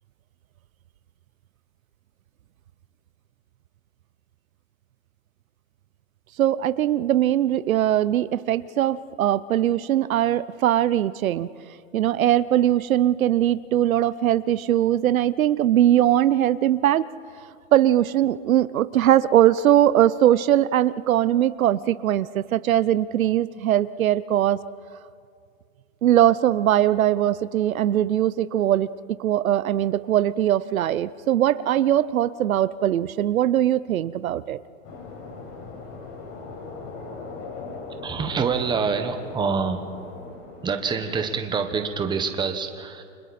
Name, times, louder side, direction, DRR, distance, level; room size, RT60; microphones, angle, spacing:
voice 1, 6.4-11.5 11.9-17.1 17.7-24.6 26.0-28.9 29.2-34.6, right 12 dB, 90° right, 17 dB, 0.8 m, -21 dB
sound 1, 34.8-41.9, left 3 dB, 40° left, 5.0 m, -40 dB
voice 2, 38.0-40.0 40.6-43.0, right 5 dB, 10° right, 6 dB, 1.3 m, -26 dB
29.5 x 26.0 x 4.3 m, 2.2 s
hypercardioid pair, 145°, 40 cm